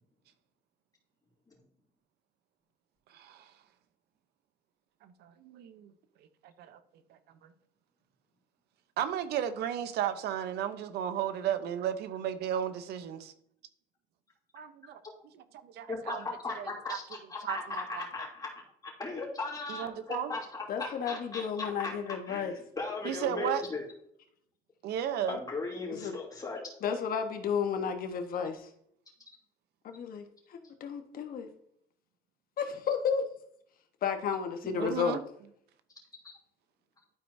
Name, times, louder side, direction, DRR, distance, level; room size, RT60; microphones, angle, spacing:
voice 1, 3.1-3.5 5.0-5.9 6.4-6.8 7.4-7.5 9.0-13.3 14.5-15.0 15.3-16.2 16.6-17.0 17.4-18.1 19.7-20.3 23.0-23.6 24.8-25.4 34.8-35.2, right 10 dB, 75° right, 11 dB, 0.8 m, -34 dB
voice 2, 15.9-21.9 22.3-23.8 25.3-26.6 34.8-34.9, left 3 dB, 20° left, -3 dB, 2.9 m, -37 dB
voice 3, 20.7-22.5 25.9-26.1 26.8-28.6 29.8-31.5 32.6-33.2 34.0-35.2, left 7 dB, 60° left, 5 dB, 1.2 m, -32 dB
12.0 x 4.6 x 2.7 m, 0.70 s
cardioid pair, 110°, 17 cm